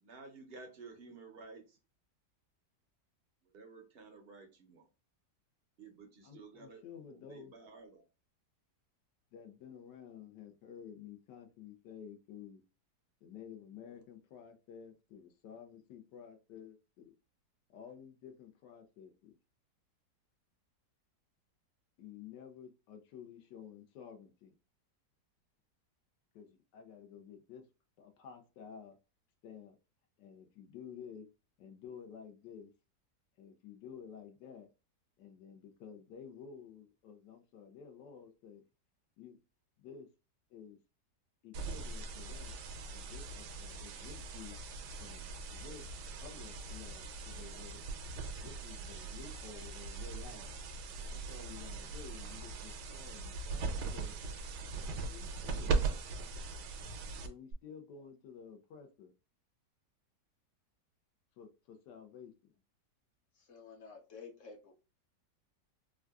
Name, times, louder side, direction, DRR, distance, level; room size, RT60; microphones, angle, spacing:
voice 1, 0.0-1.8 3.4-4.9 5.8-6.8 7.1-8.0, right 4 dB, 60° right, 0.6 m, -53 dB
voice 2, 6.2-7.5 9.3-12.6 13.2-17.1 17.7-19.3 22.0-24.5 26.3-27.6 28.0-29.0 29.4-29.8 30.2-31.3 31.6-32.7 33.4-34.7 35.2-38.7 39.2-39.4 39.8-40.1 40.5-40.8 41.4-42.5 42.9-44.6 45.0-45.8 46.2-47.8 48.4-50.5 51.1-54.4 55.0-55.8 57.2-59.1 61.4-62.3, left 7 dB, 80° left, 1.2 m, -52 dB
sound 1, 41.5-57.5, right 4 dB, 80° right, 1.2 m, -40 dB
voice 3, 63.3-64.7, left 5 dB, 60° left, 0.9 m, -51 dB
3.6 x 2.3 x 2.2 m
omnidirectional pair, 1.8 m